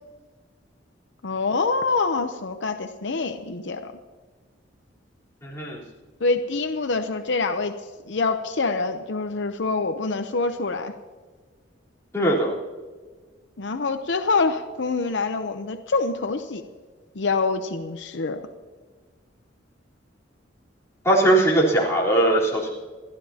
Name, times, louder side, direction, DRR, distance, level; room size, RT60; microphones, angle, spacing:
voice 1, 1.2-3.9 6.2-7.8 8.1-10.9 13.6-16.6 17.2-18.4, left 3 dB, 70° left, 7 dB, 0.8 m, -25 dB
voice 2, 5.4-5.8 12.1-12.5 21.0-22.7, right 1 dB, 15° left, -6 dB, 3.8 m, -20 dB
28.5 x 12.5 x 2.9 m, 1.4 s
head